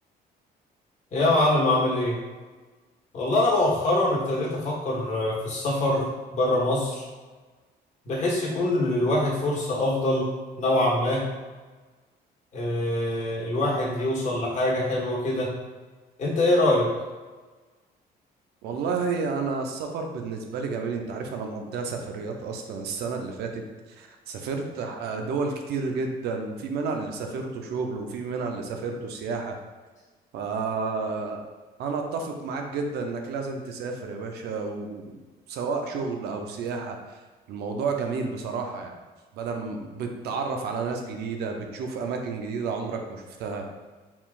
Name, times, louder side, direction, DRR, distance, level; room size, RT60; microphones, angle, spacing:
voice 1, 1.1-2.2 3.1-6.0 6.3-7.0 8.0-10.3 10.6-11.2 12.5-15.5 16.2-16.9, left 1 dB, 45° left, -4 dB, 1.5 m, -24 dB
voice 2, 18.6-23.6 23.9-29.6 30.3-31.4 31.8-35.2 35.5-37.2 37.5-39.0 39.3-43.7, right 4 dB, 75° right, 3 dB, 0.6 m, -31 dB
4.6 x 3.7 x 2.5 m, 1.3 s
cardioid pair, 110°, 17 cm